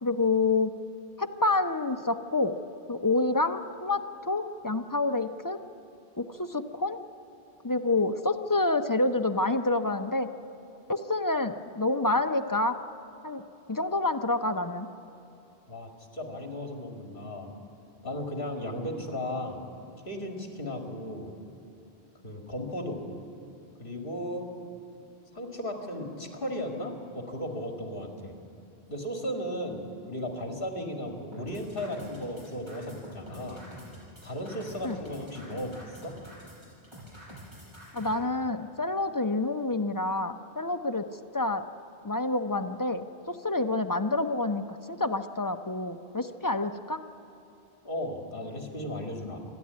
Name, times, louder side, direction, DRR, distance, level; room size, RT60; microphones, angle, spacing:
voice 1, 0.0-0.7 1.2-2.6 2.9-5.6 6.2-7.0 7.6-10.3 10.9-12.8 13.2-13.4 13.7-14.9 34.8-35.0 37.9-41.0 41.3-41.6 42.0-47.0, left 2 dB, 25° left, 7 dB, 0.5 m, -28 dB
voice 2, 15.7-17.5 18.0-19.6 20.0-21.3 22.2-23.0 23.8-24.5 25.3-28.4 28.9-33.6 34.2-36.2 47.8-49.4, left 1 dB, 60° left, 3 dB, 2.2 m, -35 dB
sound 1, 31.3-38.1, equal, 25° right, 6.2 m, -47 dB
27.5 x 11.0 x 9.5 m, 2.7 s
omnidirectional pair, 1.0 m